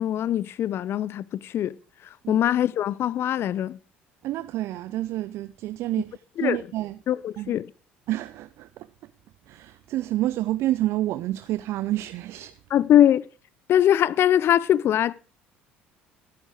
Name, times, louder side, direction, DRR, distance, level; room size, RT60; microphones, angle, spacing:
voice 1, 0.0-1.7 2.3-3.8 6.4-6.6 7.1-7.7 12.7-13.3 13.7-15.1, left 11 dB, 50° left, 0.6 m, -22 dB
voice 2, 4.2-7.0 7.4-7.5 8.1-8.9 9.5-12.5, right 15 dB, 60° right, 0.6 m, -29 dB
14.0 x 9.1 x 5.0 m
hypercardioid pair, 60°, 5 cm